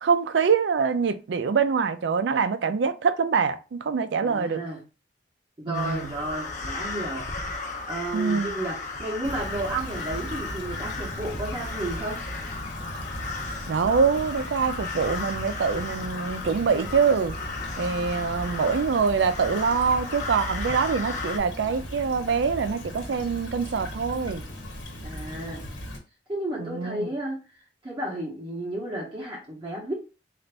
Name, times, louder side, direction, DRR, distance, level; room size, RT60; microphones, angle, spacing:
voice 1, 0.0-4.6 5.7-6.1 8.1-8.5 13.7-17.3 17.8-24.4 26.6-27.1, right 5 dB, 70° right, 0.4 m, -24 dB
voice 2, 4.2-4.8 5.6-7.3 7.9-12.2 25.0-25.6 26.3-27.4 27.8-29.9, right 1 dB, 25° right, 0.8 m, -32 dB
sound 1, 5.7-21.4, left 3 dB, 40° left, 0.6 m, -35 dB
Stream / Trickle dribble, 9.2-26.0, equal, 80° left, 1.1 m, -38 dB
3.9 x 2.5 x 3.3 m
head